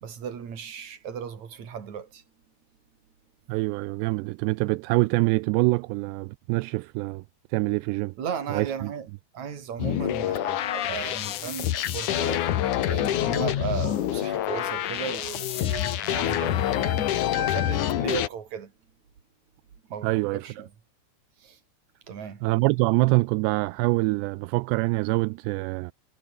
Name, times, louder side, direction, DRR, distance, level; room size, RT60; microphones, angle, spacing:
voice 1, 0.0-2.2 8.2-9.1 9.3-18.7 19.9-20.7 21.4-21.6 22.1-22.4, right 7 dB, 45° right, 3.9 m, -36 dB
voice 2, 3.5-7.2 7.5-8.1 8.5-8.9 20.0-20.5 22.4-25.9, right 23 dB, 85° right, 2.5 m, -25 dB
sound 1, 9.8-18.3, left 12 dB, 65° left, 2.0 m, -26 dB
omnidirectional pair, 5.3 m